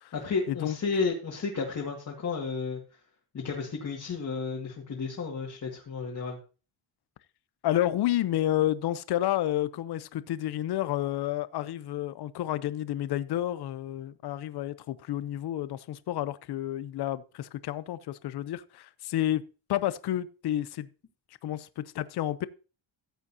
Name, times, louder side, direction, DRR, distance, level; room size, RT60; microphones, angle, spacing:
voice 1, 0.1-2.8 3.3-6.4, left 4 dB, 40° left, 2.0 m, -32 dB
voice 2, 7.6-19.4 19.7-20.9 21.4-22.5, left 13 dB, 55° left, 0.6 m, -30 dB
14.5 x 8.1 x 2.7 m
cardioid pair, 140°, 47 cm